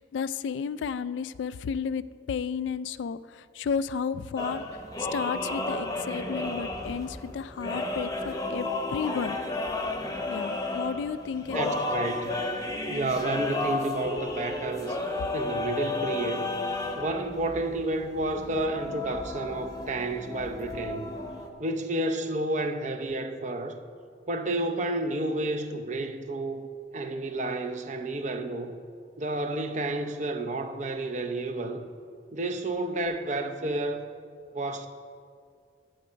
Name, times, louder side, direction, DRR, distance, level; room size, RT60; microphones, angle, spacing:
voice 1, 0.0-4.7 5.1-9.4 10.3-11.8, left 6 dB, 75° left, 0.3 m, -32 dB
sound 1, 4.4-21.5, left 2 dB, 20° left, 0.8 m, -33 dB
voice 2, 11.5-12.4 12.9-16.5 17.0-21.1 21.6-23.8 24.3-26.7 26.9-28.7 29.2-31.9 32.3-34.1 34.5-34.9, right 2 dB, 40° right, 0.7 m, -31 dB
11.5 x 7.9 x 5.1 m
head